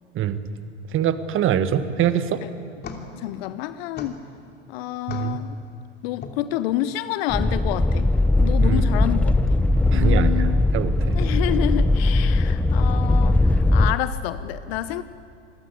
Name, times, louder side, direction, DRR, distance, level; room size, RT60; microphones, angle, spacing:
voice 1, 0.9-2.4 5.1-5.4 8.6-8.8 9.9-11.2, right 9 dB, 35° right, 11 dB, 1.5 m, -24 dB
sound 1, 2.5-6.9, left 4 dB, 25° left, 3.0 m, -43 dB
voice 2, 3.1-4.2 4.7-5.6 6.0-8.1 8.4-9.6 9.9-10.7 11.1-15.0, left 13 dB, 55° left, 14 dB, 0.9 m, -29 dB
sound 2, 7.3-14.0, left 2 dB, 5° left, 0.6 m, -19 dB
28.0 x 20.5 x 8.5 m, 2.6 s
hypercardioid pair, 85°, 36 cm